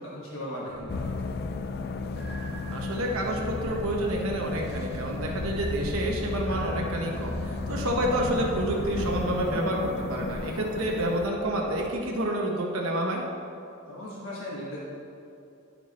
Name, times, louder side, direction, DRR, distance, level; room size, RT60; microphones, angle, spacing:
voice 1, 0.0-1.4 10.2-10.4 13.9-14.8, left 1 dB, 75° left, -6 dB, 1.3 m, -38 dB
sound 1, 0.7-9.6, equal, ahead, 1.0 m, -38 dB
sound 2, 0.9-11.3, left 4 dB, 50° left, 0.3 m, -35 dB
voice 2, 2.7-13.2, right 1 dB, 85° right, -1 dB, 1.0 m, -29 dB
sound 3, 6.7-12.0, equal, 40° right, 0.9 m, -45 dB
11.0 x 4.5 x 4.1 m, 2.7 s
head